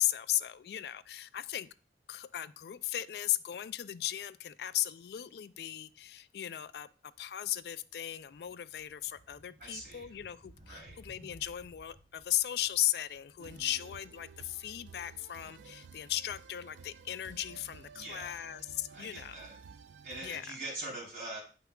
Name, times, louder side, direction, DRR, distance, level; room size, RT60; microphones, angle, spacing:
voice 1, 0.0-1.7 2.1-6.9 7.2-19.4 20.2-20.5, left 13 dB, 60° left, 0.3 m, -36 dB
sound 1, 7.2-16.0, right 1 dB, 30° right, 0.7 m, -59 dB
voice 2, 9.6-10.1 10.6-11.0 17.9-18.4 18.9-19.6 20.0-21.4, right 2 dB, 50° right, 3.4 m, -43 dB
sound 2, 13.4-20.4, right 5 dB, 85° right, 0.4 m, -53 dB
8.2 x 5.7 x 2.3 m
head